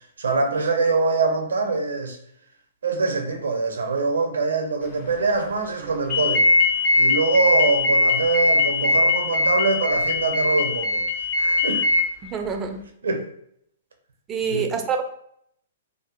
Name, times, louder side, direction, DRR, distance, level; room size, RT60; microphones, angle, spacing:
voice 1, 0.2-2.2 2.8-6.5 7.0-11.0 11.3-11.9 13.0-13.3 14.5-14.7, right 3 dB, 75° right, 0.5 m, -24 dB
sound 1, 6.1-12.0, left 2 dB, 35° left, 0.6 m, -20 dB
voice 2, 12.2-12.8 14.3-15.0, right 6 dB, 20° right, 0.4 m, -26 dB
2.5 x 2.4 x 2.5 m
figure-of-eight pair, 120°, 0 cm